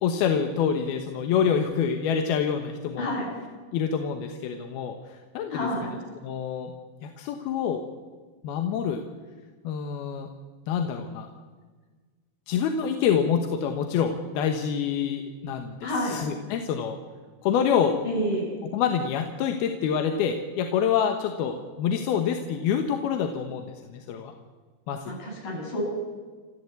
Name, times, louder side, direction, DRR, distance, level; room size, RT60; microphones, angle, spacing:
voice 1, 0.0-3.1 3.7-5.7 6.2-6.7 7.0-7.8 8.4-9.0 9.6-10.3 10.7-11.3 12.5-17.0 17.4-18.0 18.7-24.3 24.9-25.1, left 7 dB, 70° left, 5 dB, 2.8 m, -26 dB
voice 2, 3.0-3.3 5.5-5.9 15.8-16.2 18.0-18.5 25.0-25.8, equal, 45° left, -3 dB, 9.6 m, -29 dB
29.5 x 14.5 x 8.3 m, 1.4 s
omnidirectional pair, 5.2 m